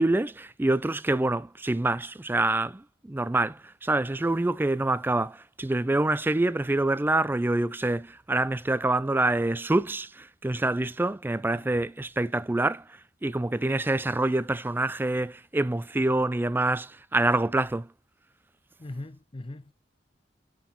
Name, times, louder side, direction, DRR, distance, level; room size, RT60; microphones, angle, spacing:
voice 1, 0.0-12.8 13.2-17.9, right 2 dB, 10° right, 0.4 m, -26 dB
voice 2, 18.8-19.7, left 2 dB, 30° left, 0.6 m, -40 dB
6.1 x 5.8 x 4.2 m
head